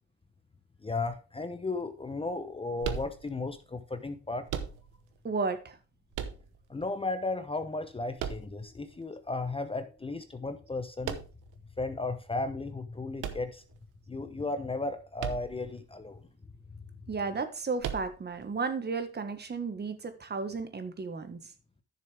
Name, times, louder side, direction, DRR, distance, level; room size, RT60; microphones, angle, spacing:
voice 1, 0.8-4.5 6.7-11.2 11.8-13.6 14.1-16.2, left 3 dB, 20° left, 0.8 m, -35 dB
sound 1, 2.8-3.6 4.5-5.2 6.1-6.9 8.2-9.0 11.0-11.6 13.2-14.1 15.2-15.8 16.0-16.1 17.8-18.4, right 8 dB, 85° right, 1.0 m, -37 dB
voice 2, 5.2-5.8 17.1-21.5, right 4 dB, 35° right, 1.4 m, -33 dB
10.5 x 6.7 x 3.4 m
cardioid pair, 90°, 30 cm